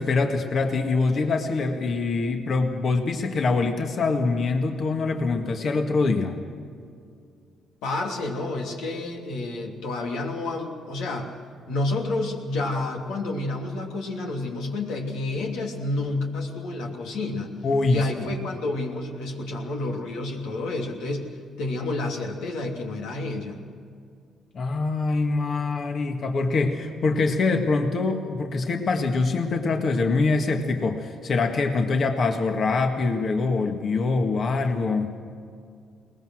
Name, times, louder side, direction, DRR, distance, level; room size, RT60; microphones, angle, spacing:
voice 1, 0.0-6.3 17.6-18.1 24.5-35.2, left 3 dB, 55° left, 4 dB, 1.8 m, -24 dB
voice 2, 7.8-11.3 11.7-17.5 17.9-21.3 21.6-23.6, left 2 dB, 90° left, 1 dB, 2.9 m, -29 dB
22.0 x 19.5 x 6.4 m, 2.3 s
cardioid pair, 90°, 0 cm